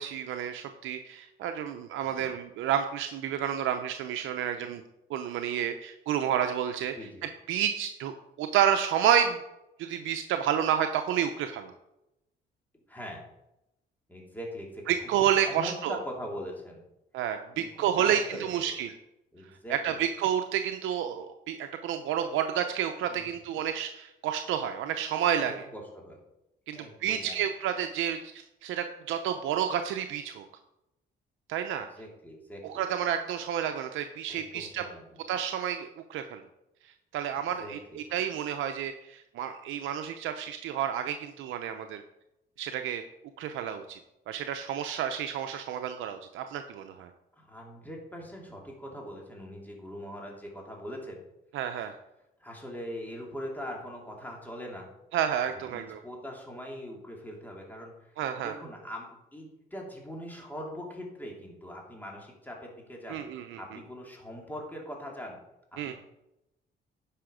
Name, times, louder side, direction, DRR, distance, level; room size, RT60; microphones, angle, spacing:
voice 1, 0.0-4.8 5.1-6.9 7.5-9.4 9.8-11.7 14.9-16.0 17.1-18.9 19.7-25.5 26.7-28.3 28.6-30.4 31.5-31.9 32.6-34.8 35.3-36.4 37.1-42.0 42.6-43.0 43.4-44.0 44.3-47.1 51.5-51.9 55.1-56.0 58.2-58.5 63.1-63.6 65.8-65.9, right 9 dB, 85° right, 6 dB, 0.7 m, -30 dB
voice 2, 6.9-7.3 12.9-13.3 14.1-14.8 15.3-16.8 17.5-18.7 19.3-20.0 23.0-23.3 25.3-26.2 26.7-27.4 31.9-32.8 34.3-35.2 37.3-38.0 47.4-51.2 51.8-51.9 52.4-54.9 55.7-65.4 65.7-65.9, equal, 10° left, -1 dB, 2.9 m, -42 dB
10.0 x 5.6 x 5.0 m, 0.88 s
cardioid pair, 90°, 20 cm